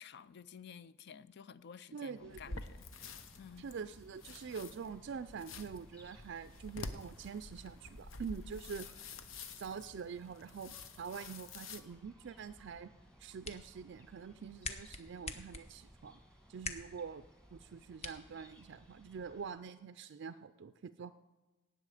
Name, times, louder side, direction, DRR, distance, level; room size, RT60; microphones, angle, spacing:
voice 1, 0.0-3.7, left 7 dB, 55° left, 16 dB, 0.4 m, -53 dB
voice 2, 1.9-2.6 3.6-9.0 9.6-12.9 13.2-16.2 16.5-17.2 17.5-21.1, right 6 dB, 60° right, 11 dB, 0.4 m, -45 dB
sound 1, 2.1-19.5, equal, 5° left, 1.5 m, -62 dB
sound 2, 2.3-11.8, left 3 dB, 75° left, 0.8 m, -49 dB
sound 3, 13.0-19.0, left 3 dB, 35° left, 0.9 m, -48 dB
18.0 x 7.3 x 4.9 m, 1.2 s
head